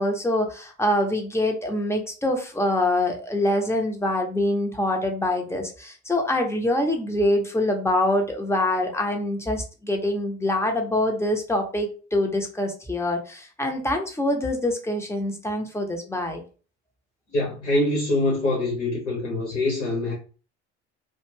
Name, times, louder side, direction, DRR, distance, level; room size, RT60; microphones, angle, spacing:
voice 1, 0.0-16.4, left 1 dB, 10° left, 0.7 m, -25 dB
voice 2, 17.3-20.1, left 2 dB, 85° left, 0.9 m, -24 dB
2.4 x 2.2 x 3.2 m
figure-of-eight pair, 65°, 35 cm